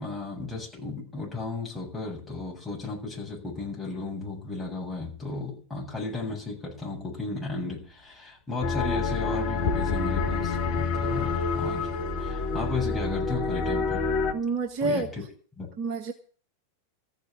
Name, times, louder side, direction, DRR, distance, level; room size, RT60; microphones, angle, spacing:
voice 1, 0.0-14.1 14.8-15.2 15.6-15.7, left 3 dB, 10° left, -4 dB, 7.8 m, -34 dB
sound 1, 8.6-14.3, left 4 dB, 45° left, 1.8 m, -28 dB
sound 2, 9.6-14.0, left 4 dB, 65° left, 1.1 m, -36 dB
voice 2, 14.3-15.1 15.8-16.1, right 3 dB, 40° right, 5 dB, 1.6 m, -28 dB
14.5 x 6.6 x 9.8 m, 0.44 s
figure-of-eight pair, 90°, 0 cm